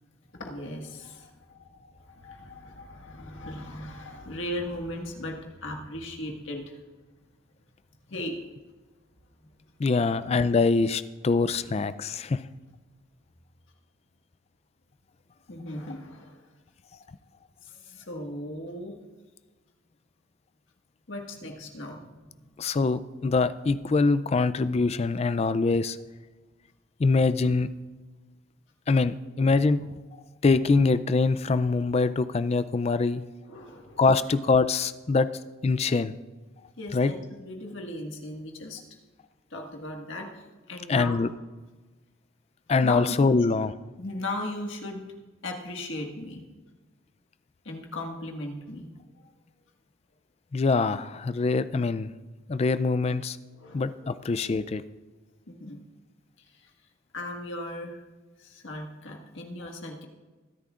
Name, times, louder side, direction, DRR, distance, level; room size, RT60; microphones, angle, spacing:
voice 1, 0.3-6.8 8.1-8.4 10.0-10.1 11.3-11.4 15.5-16.4 17.6-18.9 21.1-22.7 33.5-34.1 36.8-38.8 39.5-41.2 42.8-43.4 44.0-45.0 45.4-46.4 47.6-48.9 53.6-54.3 55.5-55.8 56.5-56.7 57.1-58.0 58.4-60.1, left 1 dB, 70° left, 1 dB, 1.7 m, -37 dB
voice 2, 9.8-12.4 22.6-26.0 27.0-27.7 28.9-29.9 30.4-33.2 34.0-35.3 35.6-36.1 36.9-37.1 40.9-41.3 42.7-43.7 50.5-52.1 52.5-53.4 53.7-54.8, left 4 dB, 30° left, 14 dB, 0.3 m, -24 dB
21.5 x 10.5 x 2.4 m, 1.3 s
head